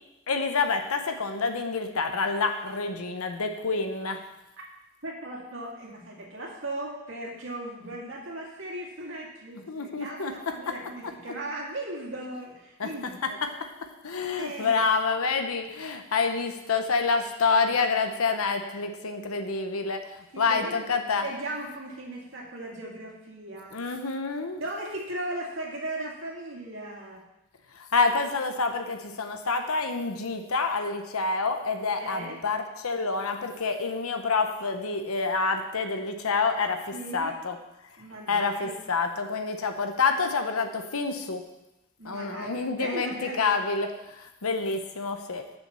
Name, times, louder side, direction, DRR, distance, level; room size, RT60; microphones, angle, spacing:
voice 1, 0.3-4.2 9.7-10.7 12.8-12.9 13.2-13.5 14.0-20.0 20.4-21.2 23.7-24.6 27.8-36.8 37.1-37.6 38.3-41.4 42.0-43.9 44.1-45.4, left 4 dB, 90° left, 6 dB, 0.9 m, -27 dB
voice 2, 5.0-13.4 14.3-14.8 20.3-20.8 21.2-23.9 24.6-27.2 32.0-32.4 36.9-37.4 38.0-38.8 42.0-43.6, right 1 dB, 65° right, -3 dB, 2.1 m, -37 dB
7.1 x 5.7 x 7.0 m, 0.94 s
head